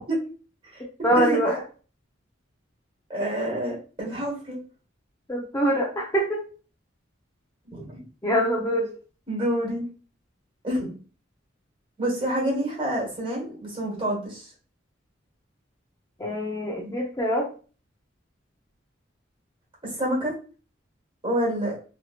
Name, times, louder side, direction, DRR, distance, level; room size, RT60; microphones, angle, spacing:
voice 1, 1.0-1.5 5.3-6.4 8.2-8.9 16.2-17.5, equal, 15° left, -1 dB, 0.4 m, -24 dB
voice 2, 3.1-4.6 7.7-8.0 9.3-9.8 10.6-11.0 12.0-14.5 19.8-20.3 21.2-21.8, right 1 dB, 25° right, -3 dB, 1.3 m, -28 dB
2.9 x 2.7 x 2.4 m, 0.37 s
head